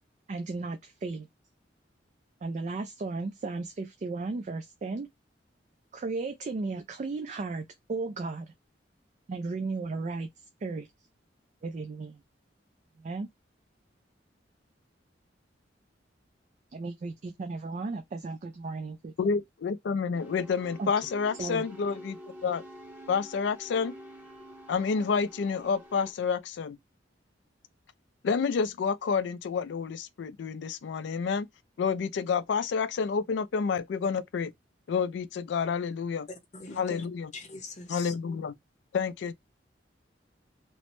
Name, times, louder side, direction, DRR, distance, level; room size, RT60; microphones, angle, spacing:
voice 1, 0.3-1.3 2.4-5.1 5.9-8.5 9.3-10.3 10.6-10.9 11.6-12.2 13.0-13.3 16.7-19.1 20.8-20.9 21.4-21.6, right 3 dB, 40° right, 0.3 m, -35 dB
voice 2, 19.2-22.6 23.1-23.9 24.7-26.8 28.2-31.5 31.8-34.5 34.9-36.3 36.8-37.3 37.9-38.5 38.9-39.3, left 5 dB, 70° left, 0.3 m, -29 dB
sound 1, 20.1-26.1, equal, 10° right, 0.8 m, -48 dB
voice 3, 36.3-37.0 37.3-38.1, left 3 dB, 40° left, 0.7 m, -42 dB
2.9 x 2.0 x 3.0 m
head